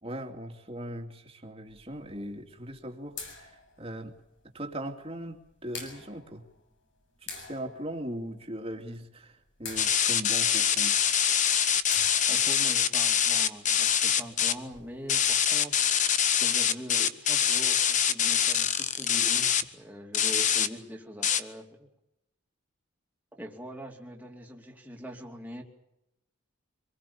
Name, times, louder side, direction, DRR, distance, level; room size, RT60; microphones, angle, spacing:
voice 1, 0.0-4.2 4.5-6.4 7.2-11.1, right 1 dB, 25° right, 4 dB, 2.6 m, -39 dB
sound 1, 1.6-15.8, left 5 dB, 60° left, 7.4 m, -48 dB
sound 2, 9.8-14.5 15.1-19.6 20.1-20.7 21.2-21.4, left 8 dB, 35° left, 1.1 m, -24 dB
voice 2, 12.3-15.8 16.0-21.9 23.3-25.6, equal, 10° right, 1 dB, 2.9 m, -43 dB
25.5 x 20.5 x 7.1 m, 0.85 s
head